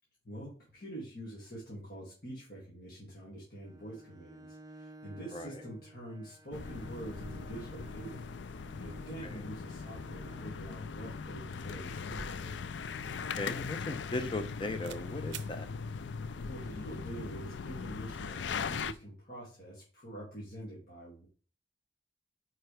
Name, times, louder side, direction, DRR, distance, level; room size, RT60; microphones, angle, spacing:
voice 1, 0.2-8.3 8.7-12.4 16.4-21.2, right 1 dB, 55° left, -6 dB, 2.4 m, -46 dB
Bowed string instrument, 3.5-10.6, right 2 dB, 20° right, 0.6 m, -54 dB
voice 2, 5.3-5.6 9.2-9.5 13.4-15.7, left 2 dB, 25° left, 8 dB, 0.8 m, -38 dB
sound 1, 6.5-18.9, left 5 dB, 85° left, 0.4 m, -40 dB
sound 2, 12.2-14.5 14.8-15.0 15.3-15.5, right 8 dB, 80° right, 0.5 m, -50 dB
9.1 x 4.8 x 3.4 m, 0.40 s
head